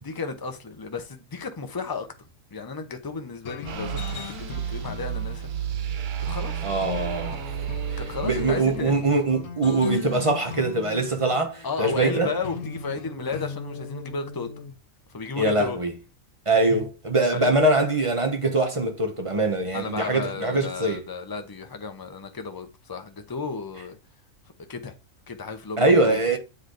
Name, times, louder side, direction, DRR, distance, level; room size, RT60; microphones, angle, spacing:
voice 1, 0.0-2.1 2.5-5.5 6.3-6.5 8.0-9.1 11.6-14.5 15.1-15.8 17.3-17.6 19.7-24.0 24.7-24.9 25.3-26.2, left 4 dB, 20° left, 0.6 m, -33 dB
sound 1, 3.5-14.7, left 7 dB, 70° left, 1.2 m, -38 dB
sound 2, 3.6-9.1, right 10 dB, 80° right, 0.4 m, -32 dB
voice 2, 6.6-7.4 7.9-12.3 15.4-15.9 16.5-21.0 25.8-26.4, right 2 dB, 30° right, 0.7 m, -23 dB
8.0 x 3.3 x 3.8 m
omnidirectional pair, 1.4 m